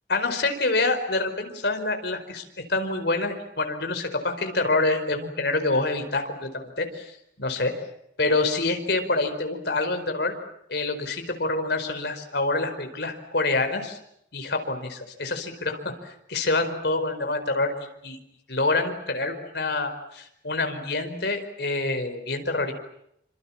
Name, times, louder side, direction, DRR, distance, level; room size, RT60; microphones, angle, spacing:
voice 1, 0.1-2.4 2.7-7.7 8.2-10.3 10.7-14.0 14.3-17.7 18.0-18.2 18.5-22.7, left 2 dB, 60° left, 6 dB, 4.9 m, -26 dB
28.5 x 26.5 x 7.4 m, 0.75 s
head